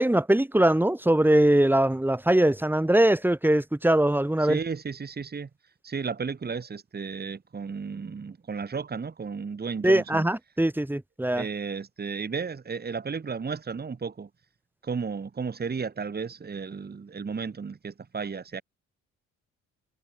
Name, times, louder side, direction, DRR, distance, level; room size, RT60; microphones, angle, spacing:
voice 1, 0.0-4.6 9.8-11.5, right 1 dB, 5° right, 2.2 m, -22 dB
voice 2, 4.4-5.5 5.8-10.2 11.4-14.3 14.8-18.6, right 5 dB, 30° right, 2.6 m, -33 dB
cardioid pair, 90°, 30 cm